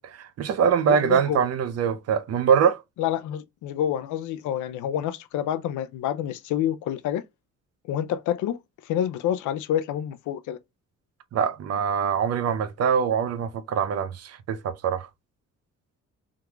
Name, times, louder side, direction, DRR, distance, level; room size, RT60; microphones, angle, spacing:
voice 1, 0.1-2.8 11.3-15.1, right 7 dB, 55° right, 0.6 m, -23 dB
voice 2, 0.9-1.5 3.0-7.2 7.9-10.6, left 10 dB, 80° left, 0.5 m, -28 dB
3.6 x 2.9 x 2.3 m
cardioid pair, 90°, 30 cm